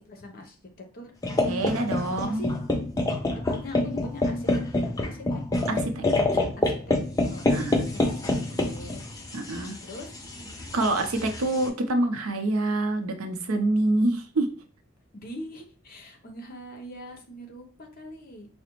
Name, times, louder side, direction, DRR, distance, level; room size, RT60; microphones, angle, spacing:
voice 1, 0.1-0.6 0.9-1.1 2.2-2.6 3.5-4.5 4.7-5.4 6.1-7.0 7.3-9.0 9.8-10.2 15.1-18.5, left 1 dB, 45° left, 4 dB, 0.7 m, -42 dB
sound 1, 1.2-11.7, left 2 dB, 15° left, 0.4 m, -27 dB
voice 2, 1.4-2.4 5.7-6.1 7.5-7.8 9.3-9.8 10.7-14.6, right 2 dB, 80° right, 7 dB, 0.6 m, -26 dB
4.8 x 2.1 x 2.9 m, 0.38 s
head